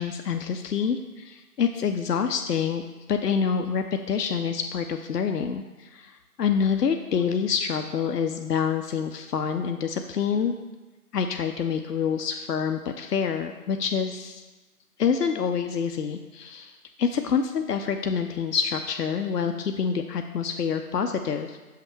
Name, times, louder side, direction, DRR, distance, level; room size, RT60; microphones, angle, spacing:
voice 1, 0.0-2.8 3.1-10.5 11.1-14.4 15.0-16.7 17.0-21.6, left 6 dB, 80° left, 6 dB, 0.6 m, -27 dB
6.6 x 5.7 x 3.1 m, 1.2 s
figure-of-eight pair, 170°, 47 cm